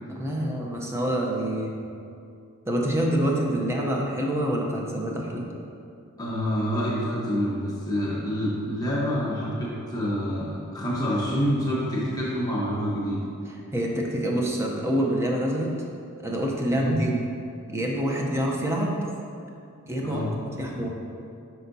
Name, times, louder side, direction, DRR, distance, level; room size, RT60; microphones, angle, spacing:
voice 1, 0.1-1.7 2.7-5.4 13.7-15.7 16.2-17.2 17.7-19.0 19.9-20.2 20.5-20.9, right 1 dB, 10° right, -1 dB, 0.7 m, -26 dB
voice 2, 6.2-13.2 16.7-17.0 20.0-20.3, equal, 15° left, -7 dB, 1.1 m, -27 dB
8.3 x 5.7 x 2.7 m, 2.5 s
head